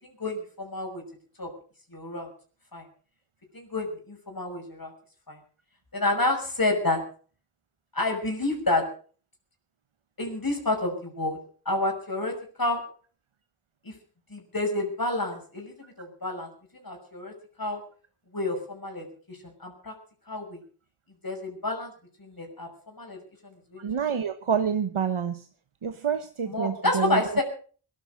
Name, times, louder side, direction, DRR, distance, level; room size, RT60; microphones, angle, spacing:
voice 1, 0.0-1.0 1.4-1.5 1.9-2.3 2.7-2.8 3.5-4.9 5.3-5.4 5.9-7.0 7.9-8.8 10.2-11.4 11.6-12.8 13.8-13.9 14.3-16.5 16.8-17.3 17.6-17.8 18.3-19.9 20.3-20.6 21.2-21.9 22.2-22.7 23.0-23.2 23.7-23.8 26.5-27.4, left 2 dB, 45° left, 2 dB, 6.4 m, -29 dB
voice 2, 23.8-25.5 25.8-27.2, right 7 dB, 85° right, 9 dB, 1.1 m, -28 dB
19.0 x 12.0 x 6.4 m, 0.43 s
cardioid pair, 40°, 48 cm